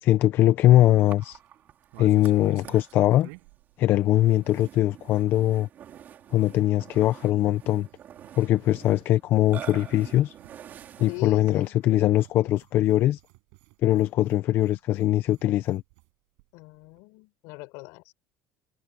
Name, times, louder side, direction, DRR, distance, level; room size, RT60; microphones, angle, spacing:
voice 1, 0.0-1.4 2.0-3.3 3.8-5.7 6.3-7.9 8.4-10.3 11.0-13.2 13.8-15.8, left 14 dB, 50° left, 0.8 m, -21 dB
Burping eructation, 1.1-11.8, right 10 dB, 40° right, 4.5 m, -47 dB
sound 1, 1.2-4.9 5.2-16.1 16.4-16.5 16.7-17.0, right 36 dB, 80° right, 6.2 m, -54 dB
voice 2, 11.1-11.8 16.5-18.1, left 25 dB, 75° left, 6.2 m, -40 dB
cardioid pair, 140°, 5 cm